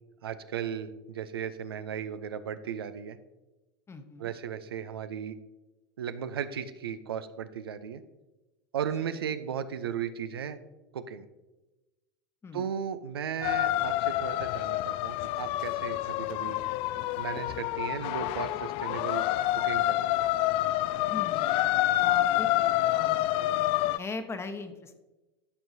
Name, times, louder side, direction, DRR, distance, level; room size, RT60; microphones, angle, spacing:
voice 1, 0.2-3.2 4.2-5.4 6.0-8.0 8.7-10.6 10.9-11.3 12.5-16.6 17.2-19.3 19.5-20.2, right 8 dB, 80° right, 11 dB, 0.6 m, -36 dB
voice 2, 3.9-4.3 9.0-9.2 12.4-12.6 21.1-21.6 22.0-23.3 23.9-25.0, left 3 dB, 20° left, 7 dB, 1.0 m, -40 dB
sound 1, 13.4-24.0, left 15 dB, 50° left, 0.4 m, -28 dB
14.0 x 6.0 x 2.7 m, 1.1 s
hypercardioid pair, 90°, 12 cm